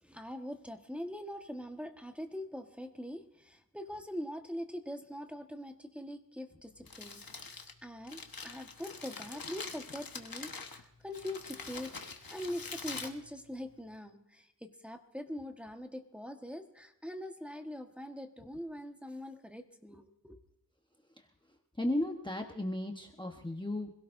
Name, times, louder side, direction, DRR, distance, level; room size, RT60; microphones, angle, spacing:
voice 1, 0.0-12.0 12.3-20.4, left 1 dB, 5° right, 4 dB, 1.4 m, -43 dB
Crumpling crinkling, 6.7-14.0, left 4 dB, 65° left, 1.3 m, -45 dB
voice 2, 21.8-23.9, left 1 dB, 10° left, 3 dB, 1.1 m, -34 dB
26.0 x 17.0 x 2.6 m, 0.82 s
wide cardioid pair, 55°, 38 cm